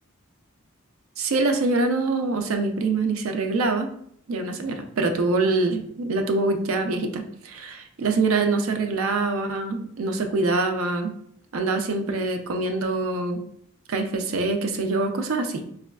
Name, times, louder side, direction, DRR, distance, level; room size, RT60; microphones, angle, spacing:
voice 1, 1.2-3.9 4.3-11.1 11.5-13.4 13.9-15.6, right 3 dB, 80° right, 6 dB, 0.4 m, -24 dB
4.8 x 2.3 x 2.2 m, 0.67 s
head